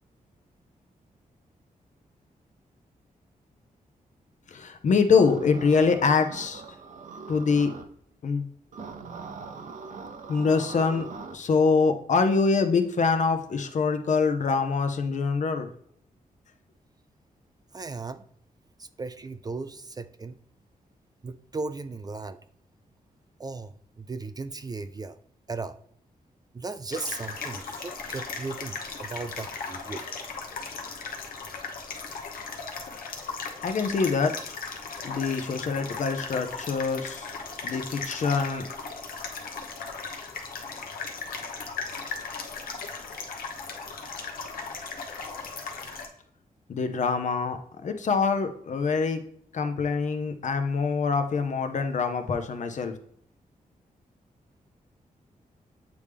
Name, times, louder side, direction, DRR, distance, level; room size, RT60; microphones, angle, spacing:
voice 1, 4.5-6.6 7.3-7.7 8.2-8.5 10.3-11.1 11.3-15.7 33.6-34.3 35.0-37.3 37.6-38.6 46.7-49.2 49.5-52.9, left 5 dB, 55° left, 7 dB, 0.8 m, -24 dB
sound 1, 5.1-7.8 8.7-11.3, right 4 dB, 60° right, 0.7 m, -41 dB
voice 2, 17.7-18.2 18.8-20.4 21.2-22.4 23.4-25.2 25.5-25.8 26.5-30.0, right 3 dB, 25° right, 11 dB, 0.3 m, -36 dB
sound 2, 26.9-46.1, left 4 dB, 85° left, 1.0 m, -37 dB
8.1 x 3.3 x 3.5 m, 0.64 s
wide cardioid pair, 110°, 15 cm